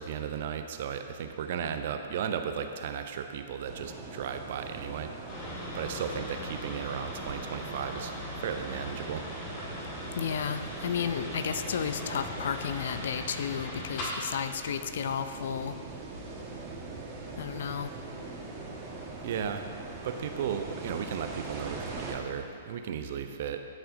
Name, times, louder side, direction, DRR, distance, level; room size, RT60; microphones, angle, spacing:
voice 1, 0.0-5.1 5.7-8.1 8.4-9.3 19.2-19.7 20.0-23.6, right 7 dB, 55° right, 7 dB, 0.6 m, -35 dB
sound 1, 3.6-22.2, right 3 dB, 25° right, 1.5 m, -42 dB
sound 2, 5.3-14.2, left 1 dB, 40° left, 1.9 m, -40 dB
voice 2, 10.2-15.7 17.4-17.9, left 7 dB, 65° left, 10 dB, 0.4 m, -32 dB
12.0 x 6.6 x 2.7 m, 2.4 s
figure-of-eight pair, 115°, 0 cm